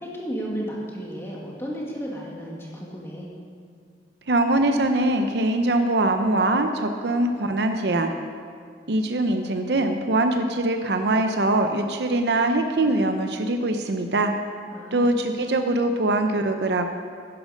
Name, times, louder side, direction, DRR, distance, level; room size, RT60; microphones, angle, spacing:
voice 1, 0.0-3.3 14.7-15.1, equal, 15° left, -3 dB, 2.1 m, -33 dB
voice 2, 4.3-8.1 8.9-14.3 14.9-16.9, right 2 dB, 70° right, 6 dB, 0.7 m, -22 dB
11.5 x 10.5 x 5.1 m, 2.2 s
head